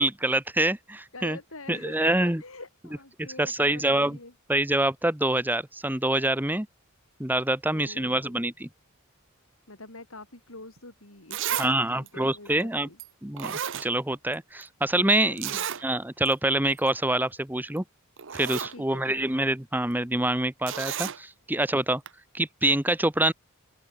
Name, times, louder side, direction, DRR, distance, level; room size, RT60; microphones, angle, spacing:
voice 1, 0.0-1.4 1.7-2.4 3.2-4.2 4.5-6.7 7.2-8.7 11.6-12.9 13.2-17.8 18.3-22.0 22.3-23.3, right 1 dB, 10° right, 1.3 m, -26 dB
voice 2, 1.1-4.3 7.7-8.4 9.7-13.0 15.3-15.9 18.7-19.4, left 2 dB, 65° left, 5.6 m, -45 dB
Zipper (clothing), 10.8-10.9 11.3-11.7 12.1-12.2 13.0-13.1 13.4-14.3 14.6-14.7 15.4-15.8 16.3-16.4 16.7-16.9 17.8-17.9 18.2-18.7 20.7-21.2 22.1-22.2, right 9 dB, 60° right, 1.0 m, -32 dB
head